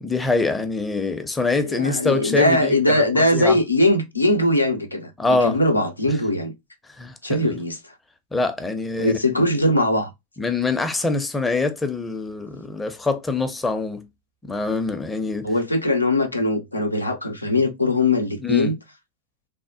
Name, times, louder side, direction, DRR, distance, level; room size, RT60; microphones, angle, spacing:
voice 1, 0.0-3.6 5.2-5.6 7.0-7.6 8.3-9.2 10.4-14.1 14.4-15.5 18.4-18.7, left 3 dB, 10° left, 0.5 m, -24 dB
voice 2, 1.6-5.1 5.4-6.5 7.2-7.8 9.0-10.1 15.4-18.8, left 1 dB, 85° left, 0.5 m, -20 dB
3.3 x 2.1 x 2.6 m
figure-of-eight pair, 90°, 0 cm